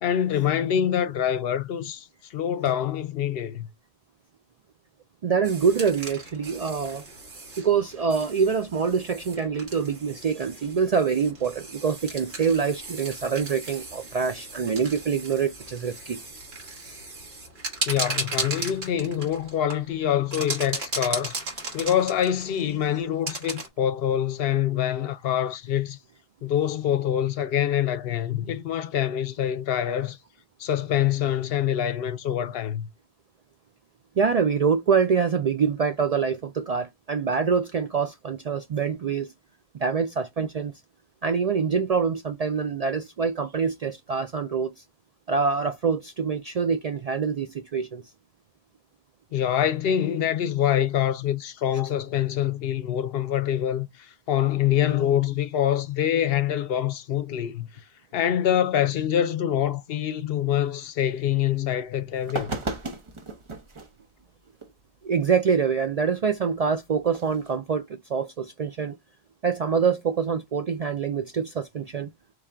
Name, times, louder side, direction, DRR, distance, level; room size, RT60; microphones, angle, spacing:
voice 1, 0.0-3.7 17.9-21.3 21.7-26.0 26.4-30.2 30.6-32.9 49.3-57.7 58.1-62.5, left 10 dB, 70° left, 0.8 m, -25 dB
voice 2, 5.2-7.0 7.6-16.2 16.8-17.0 34.2-39.3 39.7-40.7 41.2-44.7 45.3-48.0 65.0-69.0 69.4-72.1, right 6 dB, 55° right, 0.4 m, -25 dB
sound 1, 5.4-23.7, right 2 dB, 75° right, 1.9 m, -36 dB
sound 2, 61.7-61.8 62.2-63.9 64.6-64.7 67.1-67.5, right 2 dB, 30° right, 0.8 m, -34 dB
3.7 x 3.3 x 4.4 m
omnidirectional pair, 1.1 m